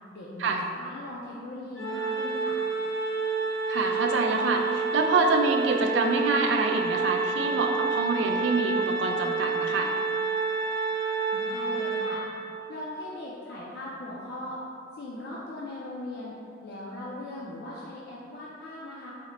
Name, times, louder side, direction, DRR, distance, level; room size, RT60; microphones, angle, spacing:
voice 1, 0.1-2.6 11.3-12.2 12.7-14.6 14.9-16.4 16.6-19.1, left 1 dB, 55° left, -6 dB, 0.4 m, -39 dB
Organ, 1.8-12.6, right 4 dB, 90° left, 1.2 m, -29 dB
voice 2, 3.7-9.9, right 3 dB, 70° right, 3 dB, 0.4 m, -26 dB
4.3 x 2.1 x 3.7 m, 2.4 s
head